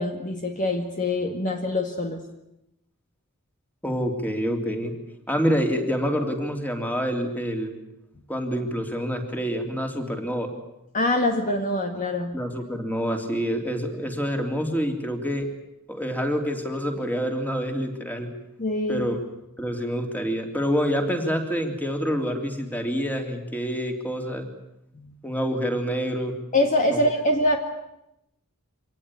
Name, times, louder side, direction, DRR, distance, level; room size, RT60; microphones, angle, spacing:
voice 1, 0.0-2.2 10.9-12.4 18.6-19.1 24.9-25.1 26.5-27.6, left 1 dB, 35° left, 4 dB, 2.0 m, -24 dB
voice 2, 3.8-4.9 5.3-7.8 8.3-10.5 12.3-15.5 15.9-18.3 18.9-19.2 19.6-24.5 25.2-26.3 26.9-27.0, equal, 10° left, 4 dB, 3.2 m, -27 dB
25.5 x 18.5 x 9.9 m, 0.85 s
head